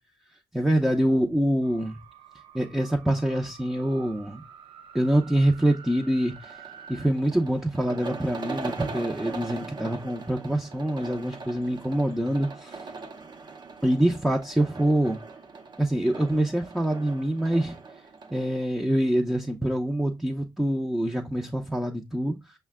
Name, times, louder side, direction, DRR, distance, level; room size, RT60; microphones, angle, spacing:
voice 1, 0.5-2.0 2.5-4.4 4.9-6.5 6.9-12.9 13.8-15.2 15.8-17.8 18.3-22.5, right 1 dB, 5° right, 0.7 m, -25 dB
sound 1, 1.6-7.1, right 7 dB, 80° right, 0.7 m, -49 dB
sound 2, 6.4-18.7, right 4 dB, 50° right, 0.8 m, -40 dB
5.5 x 2.2 x 3.5 m
supercardioid pair, 60°, 9 cm